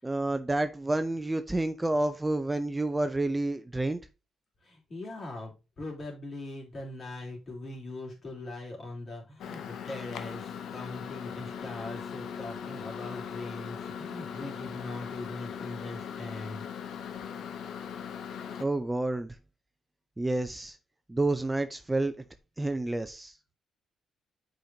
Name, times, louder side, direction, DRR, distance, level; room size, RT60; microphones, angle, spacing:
voice 1, 0.0-4.0 18.6-19.4 20.2-20.8 21.1-22.1 22.6-23.3, right 2 dB, 15° right, 0.5 m, -29 dB
voice 2, 4.6-16.6, left 2 dB, 40° left, 3.2 m, -41 dB
Microwave oven, 9.4-18.6, left 7 dB, 70° left, 0.8 m, -39 dB
7.5 x 5.1 x 2.7 m
cardioid pair, 90°, 0 cm